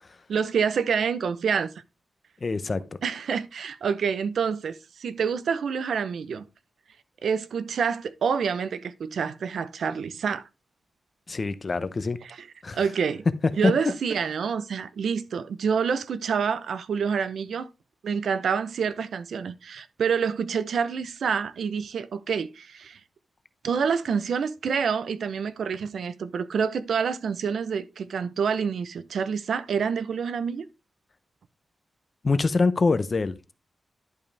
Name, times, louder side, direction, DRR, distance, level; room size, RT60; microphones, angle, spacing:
voice 1, 0.3-1.7 3.0-6.5 7.2-10.4 12.2-12.4 12.7-13.2 13.6-17.7 18.0-23.0 23.6-30.7, right 6 dB, 80° right, 0.6 m, -27 dB
voice 2, 2.4-2.8 11.3-12.2 12.6-12.8 13.4-13.7 32.2-33.5, left 3 dB, 35° left, 0.6 m, -24 dB
11.0 x 5.3 x 3.3 m
wide cardioid pair, 175°, 0 cm